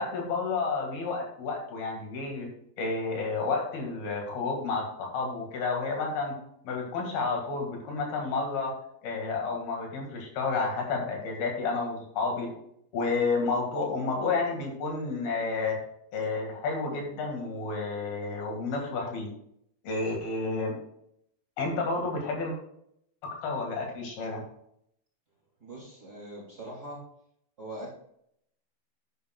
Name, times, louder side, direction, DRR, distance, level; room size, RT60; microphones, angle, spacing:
voice 1, 0.0-2.5 2.8-6.3 6.7-8.7 9.0-12.5 12.9-15.8 16.1-19.3 19.8-20.7 21.6-22.5 23.2-24.4, left 4 dB, 70° left, 0 dB, 3.8 m, -30 dB
voice 2, 25.6-27.0 27.6-27.9, right 1 dB, 25° right, -5 dB, 2.9 m, -41 dB
11.0 x 10.0 x 2.3 m, 0.72 s
omnidirectional pair, 4.5 m